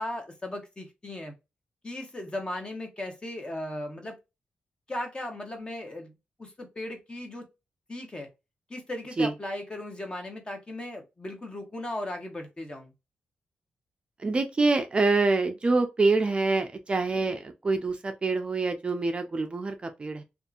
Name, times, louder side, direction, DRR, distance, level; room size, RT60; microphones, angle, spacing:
voice 1, 0.0-1.3 1.8-4.2 4.9-6.1 6.4-7.5 7.9-8.3 8.7-12.9, left 1 dB, 25° left, 0.9 m, -37 dB
voice 2, 14.2-20.2, right 3 dB, 30° right, 0.4 m, -26 dB
2.6 x 2.4 x 2.3 m
cardioid pair, 100°, 4 cm